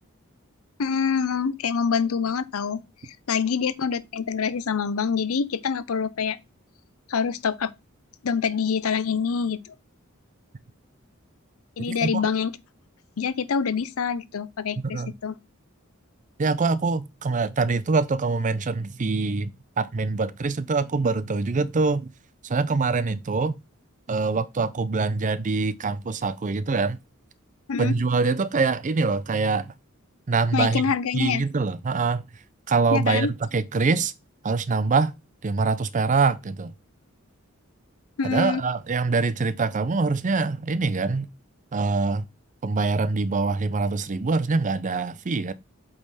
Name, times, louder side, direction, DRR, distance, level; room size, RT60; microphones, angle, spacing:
voice 1, 0.8-6.4 7.1-7.7 8.2-9.7 11.8-12.6 13.2-15.3 27.7-28.0 30.5-31.4 32.9-33.3 38.2-38.6, left 6 dB, 85° left, 0.6 m, -26 dB
voice 2, 11.9-12.2 14.9-15.1 16.4-19.5 19.8-22.1 22.4-23.5 24.1-27.0 27.8-29.7 30.3-32.2 32.7-34.1 34.4-35.1 35.4-36.7 38.2-41.3 41.7-42.2 42.6-45.5, right 4 dB, 35° right, 0.5 m, -24 dB
7.9 x 3.6 x 4.1 m
head